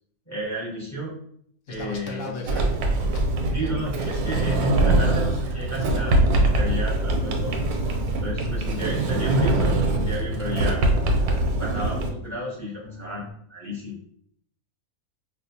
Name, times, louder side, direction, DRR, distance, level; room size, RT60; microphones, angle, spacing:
voice 1, 0.3-1.1 1.7-2.7 3.5-7.6 8.2-10.8 11.5-13.2 13.5-14.0, equal, 15° left, -6 dB, 0.7 m, -32 dB
voice 2, 1.7-3.6, left 2 dB, 65° left, 1 dB, 0.9 m, -36 dB
Sliding door, 2.5-12.1, right 2 dB, 85° right, 1.1 m, -23 dB
sound 1, 4.6-13.3, left 1 dB, 45° left, 1.6 m, -44 dB
4.3 x 2.2 x 2.7 m, 0.67 s
omnidirectional pair, 1.5 m